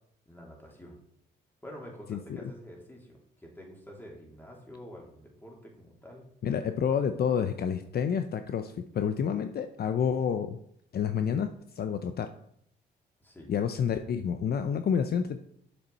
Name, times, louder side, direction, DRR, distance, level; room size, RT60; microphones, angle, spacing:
voice 1, 0.3-1.0 1.6-6.3 13.2-13.5, equal, 10° left, -2 dB, 3.2 m, -47 dB
voice 2, 6.4-10.6 10.9-11.5 11.8-12.3 13.5-15.5, left 7 dB, 50° left, 9 dB, 0.6 m, -29 dB
7.8 x 7.1 x 4.1 m, 0.70 s
cardioid pair, 90°, 20 cm